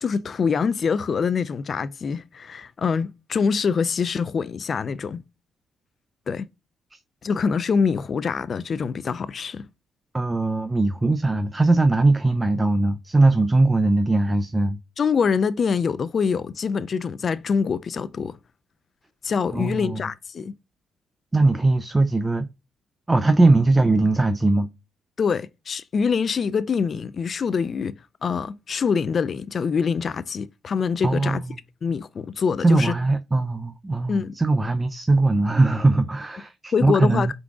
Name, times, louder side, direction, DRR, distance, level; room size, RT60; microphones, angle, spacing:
voice 1, 0.0-5.2 6.3-6.5 7.2-9.7 15.0-18.4 19.2-20.5 25.2-27.9 28.2-31.4 31.8-32.9 34.1-34.3 36.7-37.3, left 6 dB, 45° left, 0.3 m, -24 dB
voice 2, 10.1-14.8 19.5-20.0 21.3-22.5 23.1-24.7 31.0-31.6 32.6-37.3, right 2 dB, 20° right, 0.4 m, -20 dB
4.5 x 3.8 x 2.3 m
cardioid pair, 90°, 0 cm